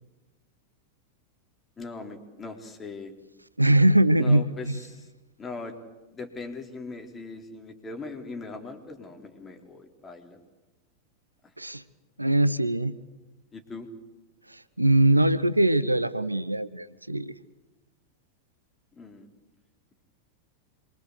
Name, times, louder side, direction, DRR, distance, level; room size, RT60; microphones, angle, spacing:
voice 1, 1.8-3.1 4.2-5.1 5.4-5.8 6.1-10.4 13.5-13.9 18.9-19.3, left 3 dB, 20° left, 4 dB, 4.0 m, -40 dB
voice 2, 3.6-4.7 11.6-11.8 12.2-13.0 14.5-17.3, right 1 dB, 85° right, 16 dB, 0.8 m, -22 dB
26.5 x 23.5 x 8.2 m, 1.1 s
figure-of-eight pair, 90°, 0 cm